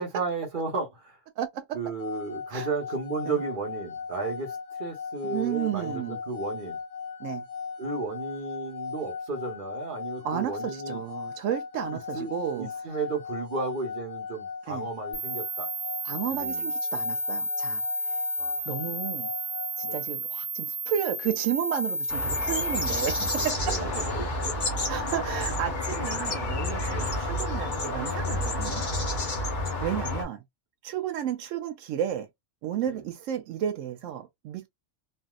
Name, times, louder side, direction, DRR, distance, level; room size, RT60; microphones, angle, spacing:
voice 1, 0.0-1.2 1.7-6.8 7.8-11.0 11.8-15.7 16.3-16.7 18.4-18.6 19.8-20.0 23.6-24.5 26.9-27.2 32.9-33.0, right 4 dB, 45° right, 1.0 m, -34 dB
voice 2, 1.4-1.8 2.5-2.7 3.3-3.4 5.2-6.2 7.2-7.4 10.2-12.7 14.7-14.8 16.0-18.2 18.7-19.3 19.8-23.7 24.9-28.8 29.1-29.5 29.8-30.4 30.8-32.3 32.6-34.7, right 10 dB, 85° right, 0.9 m, -32 dB
sound 1, 2.0-20.1, left 5 dB, 65° left, 1.2 m, -38 dB
sound 2, 15.1-23.5, right 1 dB, 15° left, 1.4 m, -32 dB
sound 3, 22.1-30.2, left 2 dB, 40° left, 1.0 m, -30 dB
3.2 x 2.6 x 2.3 m
omnidirectional pair, 1.3 m